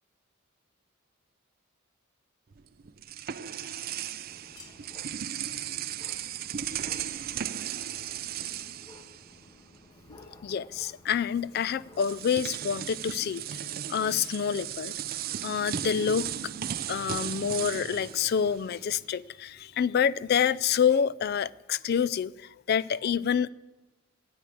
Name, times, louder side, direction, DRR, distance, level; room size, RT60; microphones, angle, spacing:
sound 1, 2.5-9.8 10.1-10.3 11.4-11.5 11.9-19.1, right 9 dB, 45° right, 0.5 m, -36 dB
sound 2, 4.3-12.4, left 2 dB, 20° left, 1.2 m, -55 dB
voice 1, 10.2-13.6 13.9-14.9 15.4-16.3 16.9-23.5, left 7 dB, 50° left, 0.3 m, -27 dB
11.0 x 8.4 x 8.5 m
head